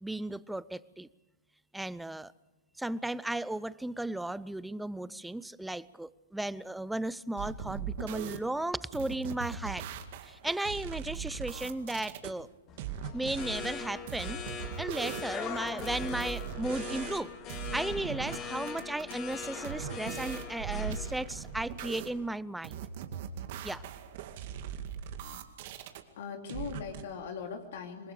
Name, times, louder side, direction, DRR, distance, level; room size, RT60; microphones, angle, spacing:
voice 1, 0.0-1.1 1.7-2.3 2.8-9.9 10.2-12.5 13.1-14.4 14.8-17.3 17.7-22.8 23.6-23.8, right 1 dB, 5° right, 19 dB, 0.6 m, -35 dB
sound 1, 7.4-8.4 8.9-12.3 12.8-13.7 14.1-17.2 17.5-18.4 18.7-22.1 22.6-26.0 26.5-27.0, right 8 dB, 50° right, 2.2 m, -39 dB
sound 2, 12.7-22.3, left 6 dB, 30° left, 3.5 m, -41 dB
voice 2, 26.2-28.1, left 6 dB, 60° left, 4 dB, 2.9 m, -40 dB
27.5 x 21.5 x 5.0 m, 1.1 s
hypercardioid pair, 115°, 0 cm